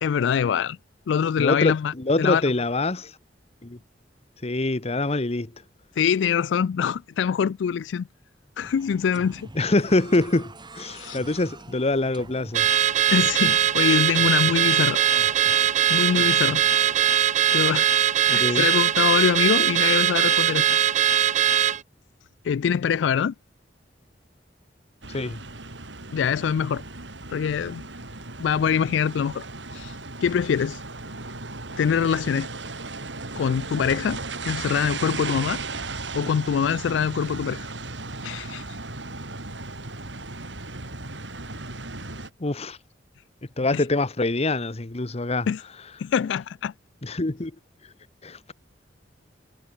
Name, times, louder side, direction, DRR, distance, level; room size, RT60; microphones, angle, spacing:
voice 1, 0.0-0.8 1.1-2.4 6.0-8.1 8.6-9.5 10.9-11.2 13.1-15.0 15.9-16.6 17.5-17.9 18.2-21.2 22.4-23.3 26.1-26.8 27.3-27.8 28.4-29.4 29.7-30.0 30.2-30.8 31.8-32.5 33.4-34.2 34.5-35.6 36.1-37.7 38.2-38.6 43.7-43.8 45.5-45.6 46.0-46.7, left 7 dB, 80° left, 0.3 m, -24 dB
voice 2, 1.4-3.1 3.6-3.8 4.4-5.5 9.6-12.7 18.3-18.7 25.1-25.4 42.4-42.8 43.6-45.5 47.0-47.5 48.2-48.5, left 2 dB, 35° left, 1.1 m, -25 dB
sound 1, 8.6-17.2, right 2 dB, 25° right, 4.2 m, -44 dB
Car / Alarm, 12.5-21.8, right 10 dB, 40° right, 0.4 m, -21 dB
sound 2, 25.0-42.3, right 3 dB, 80° right, 4.7 m, -36 dB
head